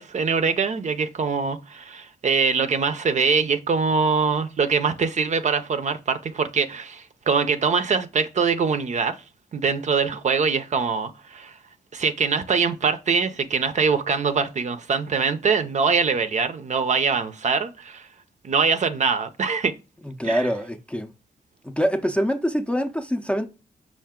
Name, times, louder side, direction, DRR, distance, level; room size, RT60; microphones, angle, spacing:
voice 1, 0.0-9.1 9.5-11.5 11.9-18.1 18.4-19.7 20.2-20.5, right 5 dB, 50° right, 0.5 m, -23 dB
voice 2, 20.0-21.1 21.6-23.5, equal, 5° left, 0.5 m, -25 dB
5.6 x 2.5 x 3.6 m
wide cardioid pair, 140°, 16 cm